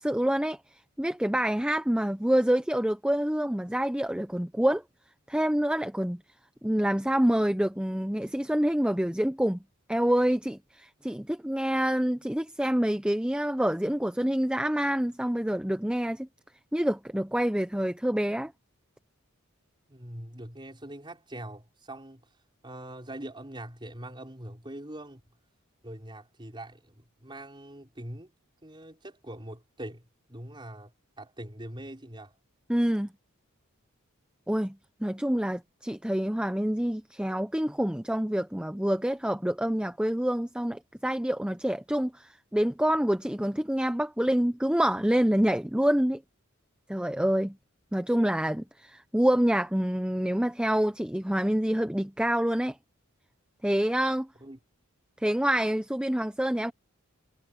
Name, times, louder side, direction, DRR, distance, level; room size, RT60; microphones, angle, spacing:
voice 1, 0.0-4.8 5.3-6.2 6.6-9.6 9.9-16.3 16.7-18.5 32.7-33.1 34.5-46.2 46.9-47.6 47.9-52.8 53.6-54.3 55.2-56.7, equal, 5° right, 0.7 m, -27 dB
voice 2, 19.9-22.2 22.6-25.2 25.8-28.3 28.6-32.3 54.4-54.6, right 1 dB, 20° right, 4.8 m, -43 dB
head